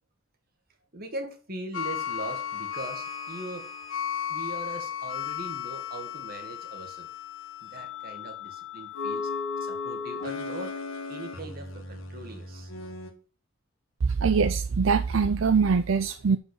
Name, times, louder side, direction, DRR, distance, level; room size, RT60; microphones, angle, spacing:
voice 1, 0.9-3.7 4.3-7.1 7.6-9.3 9.6-10.8 11.1-12.7, right 2 dB, 45° right, 4 dB, 1.8 m, -40 dB
sound 1, 1.7-13.1, left 7 dB, 75° left, 1.6 m, -35 dB
voice 2, 14.0-16.4, right 5 dB, 75° right, 9 dB, 0.5 m, -23 dB
6.9 x 5.7 x 6.3 m, 0.38 s
head